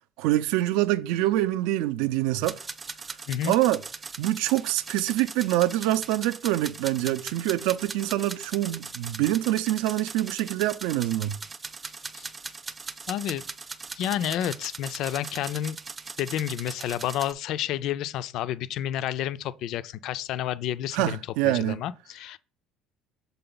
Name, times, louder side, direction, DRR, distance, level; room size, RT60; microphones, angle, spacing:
voice 1, 0.2-2.6 3.4-3.8 4.2-11.4 20.9-21.8, right 15 dB, 80° right, 0.5 m, -25 dB
sound 1, 2.4-17.3, right 4 dB, 15° right, 0.4 m, -40 dB
voice 2, 13.1-13.4 14.0-15.8 16.2-21.2 21.4-22.4, left 11 dB, 55° left, 0.3 m, -30 dB
6.7 x 4.3 x 3.9 m
cardioid pair, 160°, 0 cm